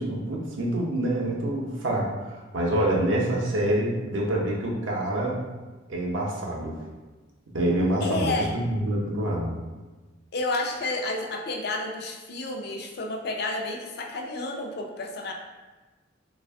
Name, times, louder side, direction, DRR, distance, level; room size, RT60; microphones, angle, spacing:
voice 1, 0.0-5.4 5.9-6.8 7.5-9.6, right 1 dB, 80° right, -2 dB, 0.6 m, -26 dB
voice 2, 8.0-8.5 10.3-15.3, left 2 dB, 55° left, 2 dB, 0.5 m, -30 dB
3.3 x 2.3 x 3.4 m, 1.3 s
head